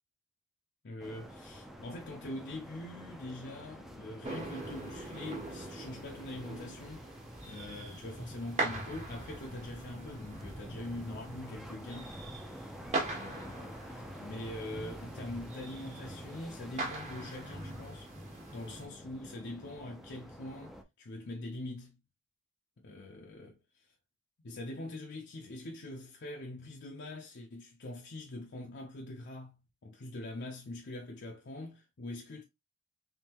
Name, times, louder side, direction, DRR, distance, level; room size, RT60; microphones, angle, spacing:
voice 1, 0.8-7.1 7.4-12.2 12.8-18.1 18.5-22.0 22.8-23.6 24.4-32.4, left 2 dB, 55° left, 0.6 m, -43 dB
sound 1, 1.0-20.8, equal, ahead, 0.5 m, -50 dB
sound 2, 4.2-18.9, right 2 dB, 35° right, 1.3 m, -41 dB
3.6 x 3.3 x 2.9 m
head